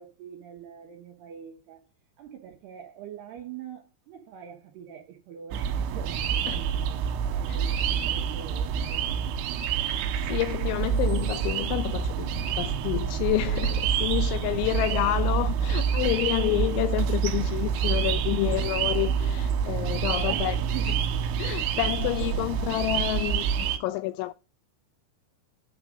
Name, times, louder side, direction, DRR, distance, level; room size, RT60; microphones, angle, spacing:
voice 1, 0.0-1.8 2.2-9.5 14.1-14.7 20.1-20.9, right 9 dB, 70° right, 2.7 m, -44 dB
sound 1, 5.5-23.8, right 7 dB, 90° right, 3.6 m, -27 dB
voice 2, 9.8-20.6 21.4-24.3, left 17 dB, 90° left, 2.6 m, -29 dB
sound 2, 17.8-18.8 20.2-20.4 20.8-20.9 22.2-23.1, left 4 dB, 35° left, 1.8 m, -44 dB
9.8 x 4.0 x 5.1 m
omnidirectional pair, 5.8 m